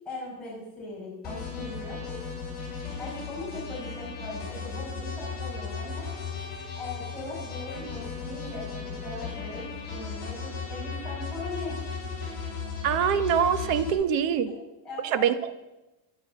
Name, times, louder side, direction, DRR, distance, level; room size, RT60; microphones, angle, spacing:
voice 1, 0.0-2.2 2.9-6.1 6.7-11.8 14.2-15.3, left 2 dB, ahead, -9 dB, 4.9 m, -40 dB
sound 1, 1.2-13.9, left 5 dB, 20° left, 6.8 m, -36 dB
voice 2, 12.8-14.5 15.1-15.6, right 8 dB, 55° right, 12 dB, 1.1 m, -24 dB
13.5 x 11.5 x 6.8 m, 0.99 s
cardioid pair, 180°, 47 cm